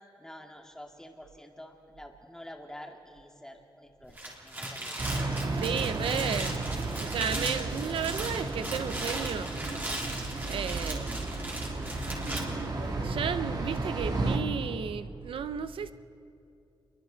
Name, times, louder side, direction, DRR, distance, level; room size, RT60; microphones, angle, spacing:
voice 1, 0.2-4.2 4.4-4.9, left 1 dB, 5° left, 2.1 m, -48 dB
sound 1, 4.0-12.4, right 1 dB, 20° right, 3.6 m, -38 dB
sound 2, 5.0-14.4, right 2 dB, 55° right, 2.4 m, -33 dB
voice 2, 5.6-6.6 7.0-9.5 10.5-11.2 12.8-15.9, right 7 dB, 85° right, 0.7 m, -33 dB
29.0 x 22.5 x 4.0 m
wide cardioid pair, 130°, 9 cm